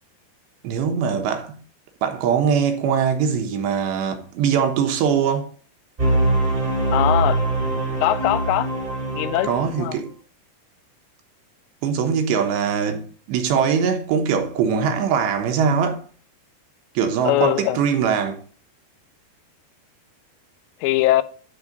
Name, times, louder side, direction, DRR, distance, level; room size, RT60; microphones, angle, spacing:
voice 1, 0.6-1.6 2.0-5.5 9.5-10.1 11.8-16.0 16.9-18.4, right 7 dB, 85° right, 3.3 m, -22 dB
sound 1, 6.0-9.9, right 2 dB, 30° right, 1.0 m, -23 dB
voice 2, 6.9-7.4 8.0-8.7 9.1-10.0 17.2-17.8 20.8-21.2, left 15 dB, 85° left, 2.8 m, -21 dB
11.0 x 3.7 x 5.2 m
omnidirectional pair, 5.0 m